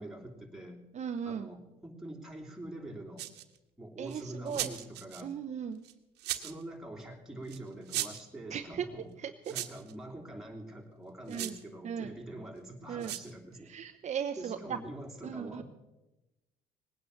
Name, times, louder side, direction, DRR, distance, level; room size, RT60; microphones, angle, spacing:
voice 1, 0.0-0.9 1.2-3.3 3.8-5.4 6.3-9.1 9.5-13.7 14.4-15.6, right 1 dB, 5° right, 0 dB, 3.0 m, -45 dB
voice 2, 0.9-1.5 4.0-4.7 5.2-5.8 8.5-8.9 9.2-9.5 11.3-11.5 11.8-12.1 12.9-13.1 13.7-14.8 15.2-15.6, right 8 dB, 45° right, 7 dB, 0.8 m, -37 dB
sound 1, 3.2-3.6 4.1-5.2 5.8-6.6 7.5-7.6 7.9-8.3 9.4-9.9 11.3-11.6 13.0-13.3, right 15 dB, 80° right, 1.3 m, -37 dB
19.5 x 9.7 x 7.0 m, 0.98 s
cardioid pair, 110°, 17 cm